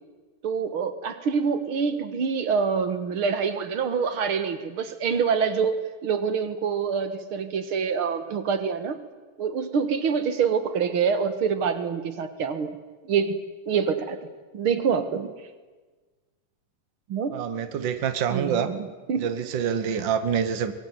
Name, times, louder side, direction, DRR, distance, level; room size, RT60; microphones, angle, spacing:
voice 1, 0.4-5.8 6.0-9.0 9.4-12.8 13.1-13.4 13.7-14.2 14.5-15.3 17.1-17.4 18.3-19.3, right 6 dB, 50° right, 11 dB, 2.0 m, -26 dB
voice 2, 17.3-18.7 19.2-20.7, right 7 dB, 65° right, 11 dB, 1.1 m, -26 dB
24.0 x 22.0 x 9.4 m, 1.3 s
omnidirectional pair, 3.9 m